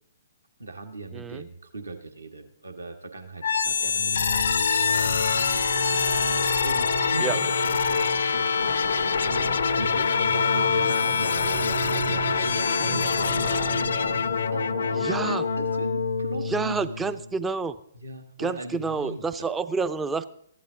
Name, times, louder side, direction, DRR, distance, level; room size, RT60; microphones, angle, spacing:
voice 1, 0.6-5.5 6.6-8.8 9.2-13.9 14.5-16.8 17.9-19.5, right 3 dB, 70° right, 7 dB, 1.4 m, -39 dB
voice 2, 1.1-1.5 7.2-7.4 15.0-15.5 16.5-17.8 18.4-20.3, right 4 dB, 10° right, 14 dB, 0.5 m, -28 dB
sound 1, 3.4-17.3, left 6 dB, 60° left, 0.5 m, -25 dB
sound 2, 5.1-16.1, right 11 dB, 50° right, 2.5 m, -37 dB
15.0 x 11.5 x 3.7 m, 0.68 s
figure-of-eight pair, 125°, 0 cm